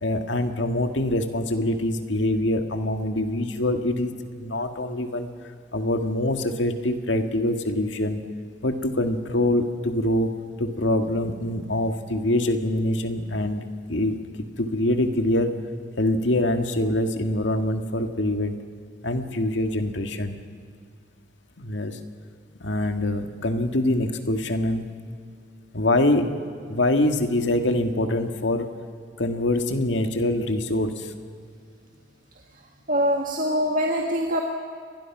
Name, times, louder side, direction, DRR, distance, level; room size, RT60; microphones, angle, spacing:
voice 1, 0.0-4.1 4.4-5.3 5.7-8.2 8.6-14.2 14.6-15.6 16.0-18.5 19.0-20.4 21.6-22.0 22.6-24.9 25.7-26.3 26.7-28.7 29.2-31.1, left 1 dB, 75° left, 6 dB, 1.9 m, -24 dB
voice 2, 32.9-34.4, equal, 45° right, 0 dB, 1.8 m, -23 dB
29.0 x 22.0 x 6.0 m, 2.2 s
head